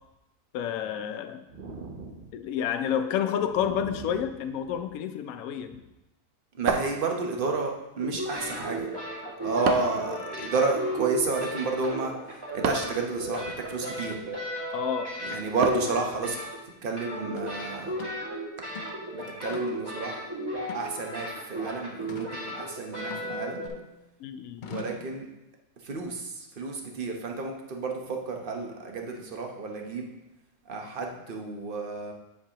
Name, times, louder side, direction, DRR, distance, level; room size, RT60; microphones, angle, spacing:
voice 1, 0.5-1.4 2.3-5.8 14.7-15.2 24.2-24.7, left 9 dB, 70° left, 8 dB, 1.0 m, -30 dB
voice 2, 1.5-2.3 3.7-3.8 6.6-8.9 9.4-12.1 12.5-14.2 15.2-16.4 16.8-17.9 19.1-20.2 20.7-23.6 24.6-25.3 25.8-30.1 30.7-32.1, right 3 dB, 40° right, 2 dB, 1.0 m, -31 dB
sound 1, 6.7-7.6 9.6-10.1 12.6-13.0 15.6-16.1, right 6 dB, 70° right, 1.1 m, -29 dB
sound 2, 8.0-16.7 17.0-23.7, right 1 dB, 15° right, 1.9 m, -35 dB
sound 3, 17.4-17.5 18.0-18.2 18.6-19.0 19.5-19.9 20.6-21.3 22.1-22.4 23.1-24.0 24.6-25.1, left 5 dB, 85° left, 0.4 m, -42 dB
8.5 x 7.4 x 2.9 m, 0.96 s
omnidirectional pair, 1.6 m